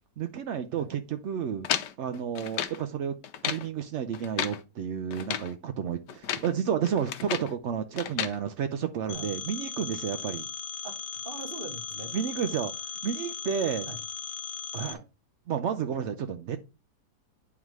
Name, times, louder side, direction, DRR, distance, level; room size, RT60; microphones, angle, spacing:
voice 1, 0.2-1.7 2.0-3.1 3.4-10.5 12.1-12.7 13.0-13.9 14.7-15.0 15.5-16.6, right 8 dB, 70° right, 0.6 m, -31 dB
sound 1, 1.6-2.8 3.2-3.7 4.1-4.6 5.1-5.5 6.1-6.5 6.9-7.5 8.0-8.4, left 10 dB, 90° left, 1.3 m, -33 dB
Telephone, 9.1-14.9, left 7 dB, 65° left, 0.9 m, -38 dB
voice 2, 10.8-12.2 13.9-14.0 14.8-15.1, right 4 dB, 40° right, 0.9 m, -42 dB
9.3 x 3.6 x 4.6 m
omnidirectional pair, 1.8 m